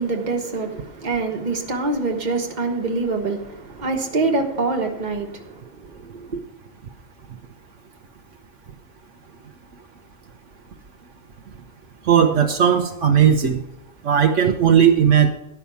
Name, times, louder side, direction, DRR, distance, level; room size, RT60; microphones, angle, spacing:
voice 1, 0.0-6.4, right 3 dB, 35° right, 1.4 m, -25 dB
voice 2, 12.0-13.6 14.0-15.3, right 8 dB, 70° right, 1.1 m, -16 dB
11.0 x 5.9 x 6.9 m
omnidirectional pair, 1.3 m